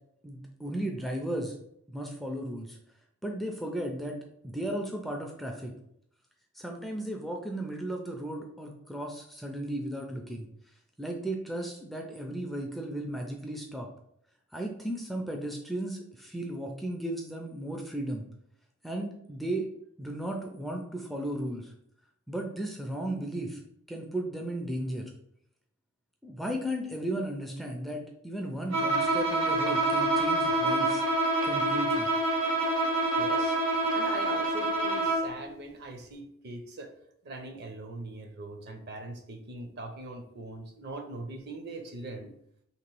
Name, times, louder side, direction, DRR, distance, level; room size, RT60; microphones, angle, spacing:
voice 1, 0.2-1.6 1.9-2.8 3.2-4.2 4.4-5.7 6.5-10.5 11.0-13.9 14.5-18.3 18.8-19.7 20.0-21.7 22.3-23.6 23.9-25.1 26.2-31.0 31.4-32.1, right 1 dB, ahead, 1 dB, 0.3 m, -35 dB
Bowed string instrument, 28.7-35.4, right 2 dB, 70° right, 0.8 m, -27 dB
voice 2, 33.1-33.6 33.9-36.9 37.2-42.3, right 2 dB, 50° right, 5 dB, 0.6 m, -41 dB
3.1 x 2.9 x 4.5 m, 0.72 s
head